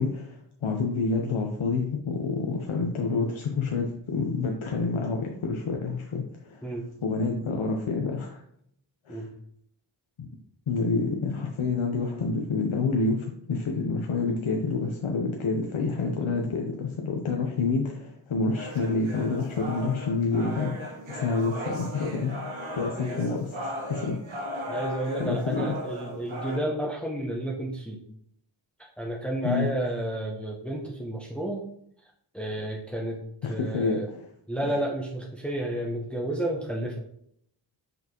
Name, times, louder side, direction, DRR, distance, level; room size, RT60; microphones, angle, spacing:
voice 1, 0.0-6.7 7.0-8.4 9.1-9.2 10.2-10.3 10.7-22.3 22.8-24.2 25.2-25.6 29.4-29.7 33.4-34.3 34.6-34.8, left 4 dB, 85° left, 1 dB, 0.8 m, -28 dB
sound 1, 18.6-26.6, equal, 75° right, 1.6 m, -36 dB
voice 2, 24.7-28.0 29.0-31.6 32.3-33.2 33.5-34.1 34.5-37.0, right 1 dB, ahead, -2 dB, 1.0 m, -31 dB
5.8 x 5.4 x 2.9 m, 0.69 s
wide cardioid pair, 65°, 47 cm